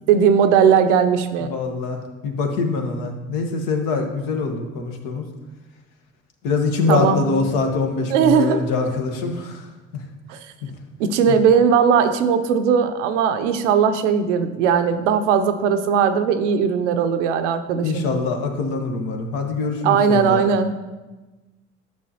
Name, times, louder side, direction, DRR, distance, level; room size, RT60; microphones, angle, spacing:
voice 1, 0.1-1.5 6.9-7.2 8.1-8.6 10.3-10.4 11.0-18.0 19.8-20.7, right 7 dB, 80° right, 8 dB, 0.6 m, -18 dB
voice 2, 1.4-5.2 6.4-9.7 9.9-10.0 11.3-11.4 17.8-20.4, left 4 dB, 65° left, 4 dB, 1.1 m, -24 dB
9.5 x 6.0 x 2.8 m, 1.2 s
hypercardioid pair, 55°, 36 cm